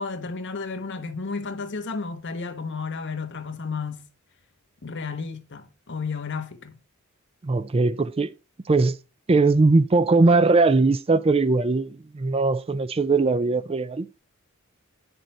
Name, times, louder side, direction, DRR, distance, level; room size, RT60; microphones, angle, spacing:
voice 1, 0.0-4.1 4.8-6.7, left 4 dB, 55° left, 1.2 m, -32 dB
voice 2, 7.4-8.3 8.7-9.0 9.3-14.1, right 3 dB, 25° right, 0.4 m, -20 dB
9.1 x 6.5 x 4.3 m
head